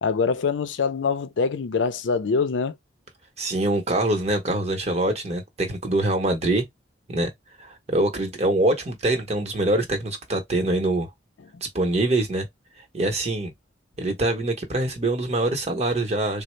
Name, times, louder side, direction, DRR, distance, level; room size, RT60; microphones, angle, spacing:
voice 1, 0.0-2.7, left 5 dB, 85° left, 0.5 m, -24 dB
voice 2, 3.4-6.6 7.1-7.3 7.6-11.1 11.7-12.5 12.9-13.5 14.0-16.4, right 2 dB, 35° right, 0.9 m, -24 dB
3.9 x 2.0 x 3.1 m
head